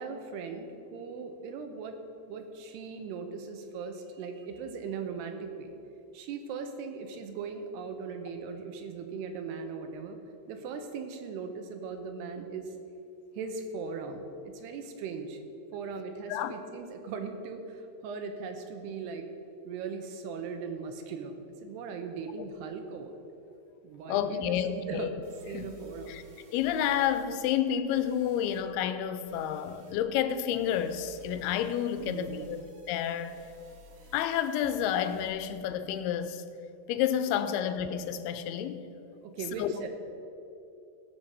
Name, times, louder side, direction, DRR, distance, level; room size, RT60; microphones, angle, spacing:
voice 1, 0.0-5.7 6.1-10.2 10.5-12.7 13.4-15.4 15.7-19.3 19.7-23.2 23.8-25.2 25.5-26.2 32.0-32.6 39.2-39.9, right 5 dB, 90° right, 6 dB, 3.0 m, -39 dB
voice 2, 24.1-25.1 25.5-25.7 26.1-26.2 26.5-32.6 32.9-33.4 34.1-36.4 36.9-38.8 39.6-39.7, left 9 dB, 85° left, 11 dB, 2.5 m, -30 dB
sound 1, 24.6-24.7 25.2-27.3 27.9-28.6 29.2-29.9 30.6-35.3, right 2 dB, 45° right, 2.0 m, -54 dB
17.0 x 5.8 x 6.8 m, 2.8 s
omnidirectional pair, 4.7 m